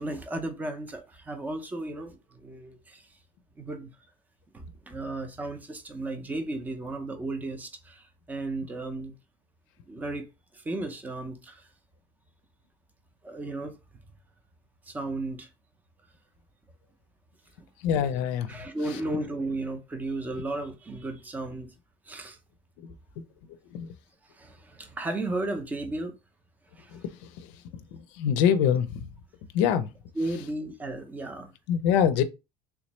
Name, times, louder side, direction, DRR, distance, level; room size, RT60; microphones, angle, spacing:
voice 1, 0.0-3.2 3.6-3.9 4.5-9.2 9.9-11.7 13.2-14.0 14.8-15.5 18.5-21.7 22.1-22.4 24.2-26.1 26.8-27.0 30.1-31.5, right 2 dB, 10° right, 0.5 m, -34 dB
voice 2, 17.8-18.5 23.7-23.9 28.2-29.0 29.5-29.9 31.7-32.2, left 8 dB, 70° left, 0.5 m, -23 dB
3.4 x 3.1 x 3.0 m
cardioid pair, 160°, 15 cm